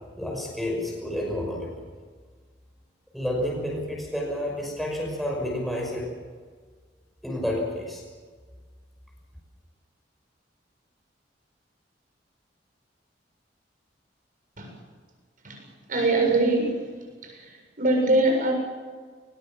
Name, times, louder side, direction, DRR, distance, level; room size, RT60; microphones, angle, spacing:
voice 1, 0.2-1.7 3.1-6.1 7.2-8.0, left 1 dB, ahead, -2 dB, 5.8 m, -30 dB
voice 2, 15.4-16.9 17.2-18.5, right 2 dB, 50° right, 2 dB, 7.4 m, -23 dB
22.0 x 20.0 x 7.5 m, 1.5 s
head